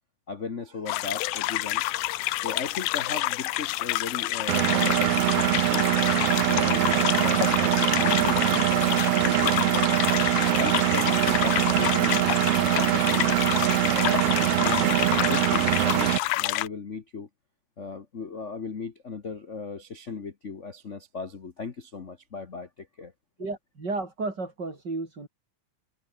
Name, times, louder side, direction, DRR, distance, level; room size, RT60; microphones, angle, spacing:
voice 1, 0.3-1.8 2.3-5.9 6.5-10.0 10.5-13.3 13.8-17.3 17.8-23.1, left 5 dB, 55° left, 0.8 m, -37 dB
sound 1, 0.9-16.7, left 18 dB, 85° left, 2.1 m, -28 dB
Engine, 4.5-16.2, right 17 dB, 85° right, 1.3 m, -23 dB
voice 2, 23.4-25.3, right 3 dB, 35° right, 5.3 m, -33 dB
omnidirectional pair, 3.4 m